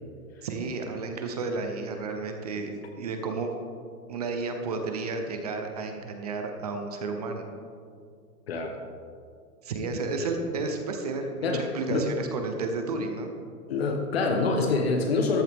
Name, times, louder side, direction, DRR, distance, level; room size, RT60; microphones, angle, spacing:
voice 1, 0.4-3.5 4.1-7.5 9.6-13.3, right 3 dB, 25° right, 4 dB, 0.7 m, -32 dB
voice 2, 8.5-8.8 10.2-10.3 11.4-12.1 13.7-15.4, left 3 dB, 40° left, 4 dB, 1.1 m, -26 dB
14.0 x 11.5 x 3.6 m, 2.3 s
hypercardioid pair, 160°, 47 cm